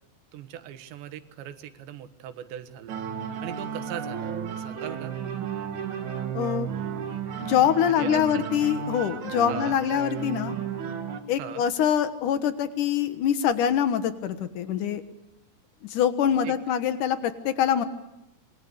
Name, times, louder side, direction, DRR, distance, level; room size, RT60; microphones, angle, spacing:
voice 1, 0.3-3.0 3.4-5.2 7.9-8.5 9.5-9.8 11.4-11.7 16.4-16.6, right 11 dB, 80° right, 10 dB, 3.4 m, -39 dB
sound 1, 2.9-11.2, right 7 dB, 55° right, 2.6 m, -33 dB
voice 2, 6.3-6.7 7.5-10.5 11.3-15.0 15.9-17.8, left 9 dB, 65° left, 10 dB, 2.2 m, -24 dB
27.0 x 22.5 x 8.3 m, 0.88 s
omnidirectional pair, 5.1 m